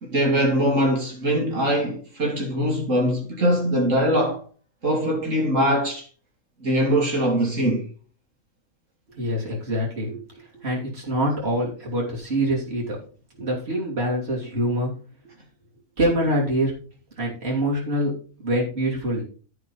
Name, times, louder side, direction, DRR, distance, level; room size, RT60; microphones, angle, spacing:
voice 1, 0.0-4.4 4.8-6.1 6.6-7.9, equal, 60° right, 2.4 m, -22 dB
voice 2, 9.2-13.0 13.4-14.9 16.0-16.7 17.2-18.1 18.4-19.2, right 1 dB, 45° right, 3.5 m, -25 dB
13.5 x 5.0 x 5.4 m
omnidirectional pair, 1.5 m